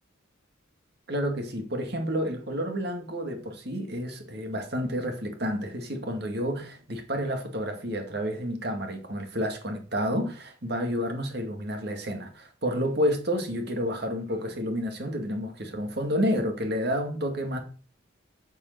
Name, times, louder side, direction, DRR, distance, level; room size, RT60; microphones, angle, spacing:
voice 1, 1.1-17.6, equal, 50° right, 2.1 m, -30 dB
9.4 x 5.3 x 6.8 m
head